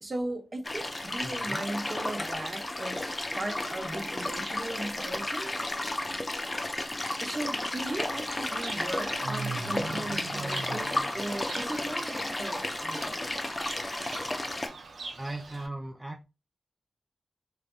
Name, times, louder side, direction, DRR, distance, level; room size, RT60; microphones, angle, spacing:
voice 1, 0.0-5.5 7.2-13.2, right 1 dB, 45° right, 0.8 m, -37 dB
sound 1, 0.6-14.7, left 1 dB, 35° left, 0.6 m, -33 dB
voice 2, 1.2-1.6 15.2-16.2, right 2 dB, 15° right, 0.4 m, -38 dB
Fowl / Bird, 7.8-15.7, right 4 dB, 85° right, 0.5 m, -41 dB
3.2 x 2.5 x 2.2 m
cardioid pair, 60°, 0 cm